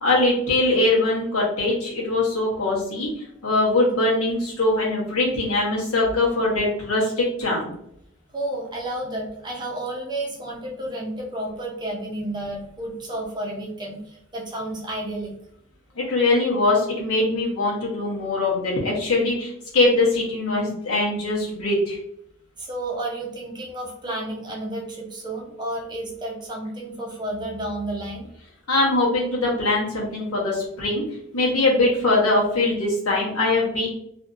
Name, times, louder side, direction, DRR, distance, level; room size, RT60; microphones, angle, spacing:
voice 1, 0.0-7.7 15.9-22.0 28.7-31.0 31.3-33.9, left 2 dB, 75° left, -4 dB, 1.0 m, -22 dB
voice 2, 8.3-15.3 22.6-28.3, right 1 dB, 20° right, -1 dB, 0.6 m, -31 dB
2.7 x 2.5 x 2.5 m, 0.75 s
head